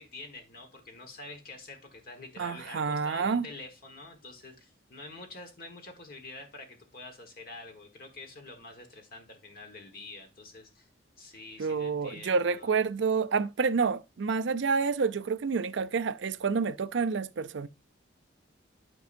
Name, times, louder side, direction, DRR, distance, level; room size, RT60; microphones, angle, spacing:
voice 1, 0.0-10.9 11.2-12.7, left 2 dB, 45° left, 1.4 m, -47 dB
voice 2, 2.4-3.5 11.6-17.7, right 5 dB, 60° right, 0.4 m, -28 dB
12.0 x 5.4 x 2.6 m
head